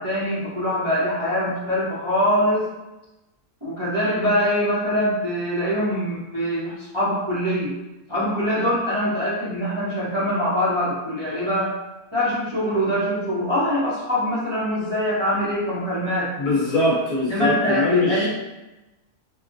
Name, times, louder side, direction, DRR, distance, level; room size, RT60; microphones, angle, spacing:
voice 1, 0.0-2.7 3.6-7.7 8.1-11.7 12.1-16.3 17.3-18.3, equal, 25° right, -10 dB, 0.6 m, -23 dB
voice 2, 16.4-18.3, left 1 dB, 60° left, -6 dB, 1.2 m, -22 dB
4.9 x 2.0 x 2.6 m, 1.0 s
omnidirectional pair, 1.7 m